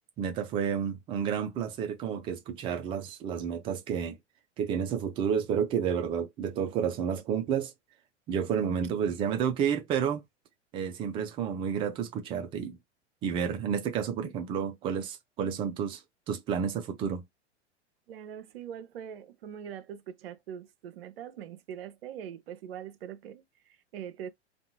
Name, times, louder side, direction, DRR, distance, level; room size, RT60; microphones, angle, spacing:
voice 1, 0.2-4.2 4.6-7.7 8.3-10.2 10.7-12.8 13.2-16.0 16.3-17.2, right 7 dB, 15° right, 0.3 m, -30 dB
voice 2, 18.1-24.3, right 9 dB, 55° right, 0.6 m, -42 dB
2.6 x 2.3 x 2.8 m
figure-of-eight pair, 90°, 35 cm